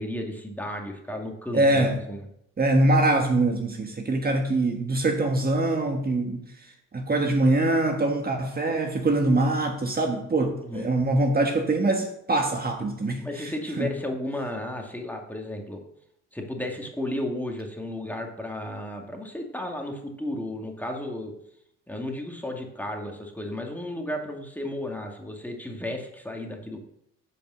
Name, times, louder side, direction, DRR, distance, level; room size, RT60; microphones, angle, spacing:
voice 1, 0.0-2.3 10.6-10.9 13.2-15.8 16.3-21.3 21.9-26.8, left 1 dB, 5° left, 2.1 m, -33 dB
voice 2, 1.5-2.0 2.6-6.5 6.9-13.9, right 2 dB, 30° right, 1.5 m, -23 dB
10.5 x 5.4 x 7.5 m
cardioid pair, 90°, 30 cm